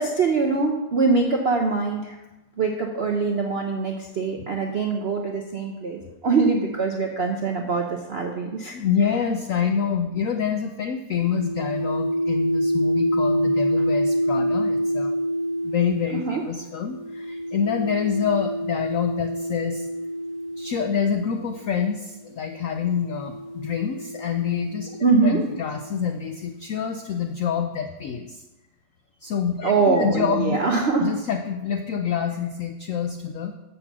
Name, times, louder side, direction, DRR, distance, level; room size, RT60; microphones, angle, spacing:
voice 1, 0.0-2.2 2.6-8.7 9.0-9.1 16.2-16.4 25.0-25.4 29.6-31.1, right 4 dB, 65° right, 2 dB, 0.6 m, -23 dB
voice 2, 8.7-15.1 15.6-19.9 20.6-25.0 25.2-28.4 29.2-30.6 31.0-33.5, left 7 dB, 85° left, 6 dB, 0.7 m, -27 dB
sound 1, 11.2-21.6 22.5-26.2, equal, 60° left, 1.2 m, -27 dB
7.3 x 6.7 x 6.0 m, 1.0 s
omnidirectional pair, 2.1 m